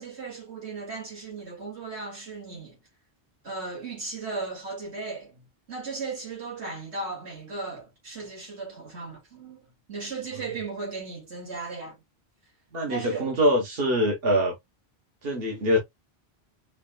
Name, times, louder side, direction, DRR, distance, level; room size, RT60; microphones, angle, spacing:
voice 1, 0.0-2.8 3.4-12.0 12.9-13.3, right 4 dB, 85° right, 2.6 m, -36 dB
voice 2, 12.7-14.5 15.2-15.8, equal, 65° right, 1.4 m, -24 dB
4.9 x 3.1 x 2.3 m
omnidirectional pair, 1.1 m